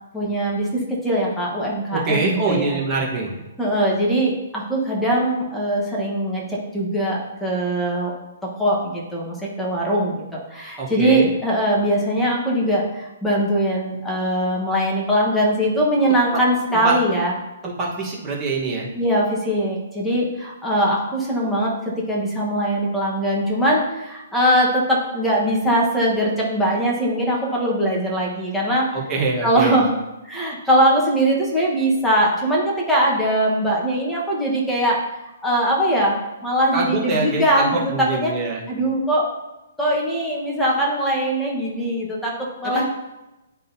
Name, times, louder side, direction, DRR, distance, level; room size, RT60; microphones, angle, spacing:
voice 1, 0.1-2.7 3.6-8.1 8.4-17.3 18.9-28.9 29.4-29.9 30.2-35.0 35.2-36.2 36.4-38.3 38.7-39.3 39.8-42.8, right 1 dB, 5° left, -4 dB, 1.2 m, -21 dB
voice 2, 1.9-3.4 10.8-11.3 16.7-16.9 17.6-18.9 28.9-29.8 36.7-38.6 42.6-42.8, right 3 dB, 15° right, -3 dB, 1.3 m, -24 dB
10.5 x 3.8 x 2.8 m, 1.0 s
hypercardioid pair, 165°, 0 cm